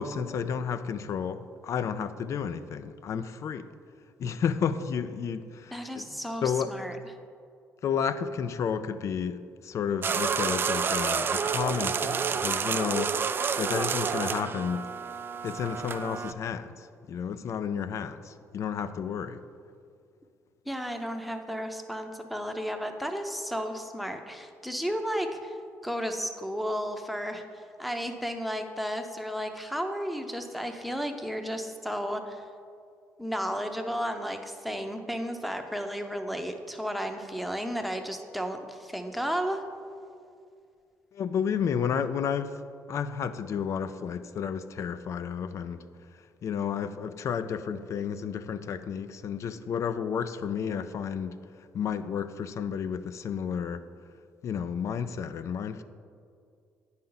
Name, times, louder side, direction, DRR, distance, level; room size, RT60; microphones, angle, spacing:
voice 1, 0.0-3.7 4.2-6.2 6.4-6.8 7.8-14.9 15.4-19.4 41.1-42.6 42.9-45.8 46.4-51.4 51.7-53.9 54.4-55.8, left 7 dB, 55° left, 0.4 m, -31 dB
voice 2, 5.7-7.0 20.7-25.6 25.8-32.4 33.2-39.6, equal, ahead, 0.7 m, -33 dB
sound 1, 10.0-16.3, right 6 dB, 40° right, 0.3 m, -29 dB
9.1 x 5.6 x 3.9 m
cardioid pair, 90°, 6 cm